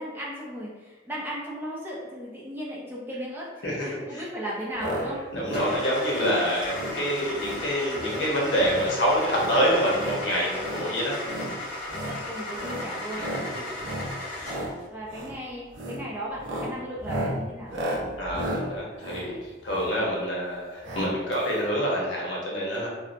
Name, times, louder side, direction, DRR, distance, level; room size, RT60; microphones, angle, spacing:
voice 1, 0.0-5.2 12.1-13.2 14.9-17.7, equal, 10° right, -5 dB, 0.4 m, -36 dB
voice 2, 3.6-4.2 5.3-11.1 13.2-13.3 18.2-19.4 19.6-22.9, equal, 80° left, -4 dB, 0.8 m, -26 dB
sound 1, 4.8-5.1 5.3-5.7 6.1-6.4 6.7-7.0 7.4-7.6 8.0-8.3 8.6-8.9 9.3-10.2 10.6-10.9 11.2-11.5 11.9-12.2 12.6-12.9 13.2-13.5 13.8-14.1 14.4-14.7 15.1-15.3 15.7-16.0 16.4-20.0 20.8-21.1 21.4-21.5 21.6-21.7, equal, 85° right, 0.6 m, -33 dB
Car / Engine starting, 5.5-14.8, left 1 dB, 35° left, 1.3 m, -36 dB
2.6 x 2.0 x 2.5 m, 1.3 s
head